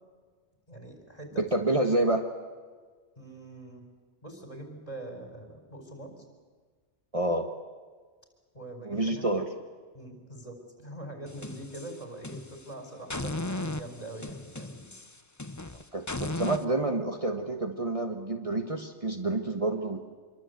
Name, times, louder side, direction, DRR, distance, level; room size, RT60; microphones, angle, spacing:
voice 1, 0.7-1.7 3.2-3.8 4.2-6.2 8.5-9.5 9.9-14.9, right 1 dB, 35° left, 4 dB, 4.7 m, -43 dB
voice 2, 1.4-2.3 7.1-7.5 8.8-9.5 15.9-20.0, right 2 dB, 30° right, 4 dB, 1.4 m, -28 dB
sound 1, 11.3-12.7 13.1-16.6, left 2 dB, 15° left, 0.9 m, -36 dB
26.0 x 23.0 x 8.1 m, 1.5 s
omnidirectional pair, 1.2 m